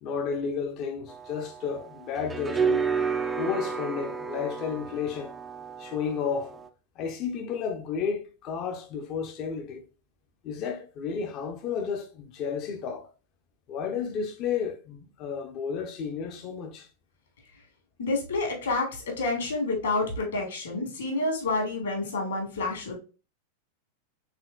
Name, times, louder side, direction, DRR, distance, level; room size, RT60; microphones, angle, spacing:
voice 1, 0.0-2.9 3.4-5.3 5.8-6.6 7.0-9.8 10.4-13.1 13.7-16.9, left 6 dB, 40° left, 0.6 m, -32 dB
sound 1, 1.1-6.7, right 6 dB, 15° right, 0.4 m, -31 dB
voice 2, 18.0-22.9, left 2 dB, 65° left, 1.7 m, -29 dB
4.3 x 3.6 x 2.3 m
figure-of-eight pair, 90°, 0 cm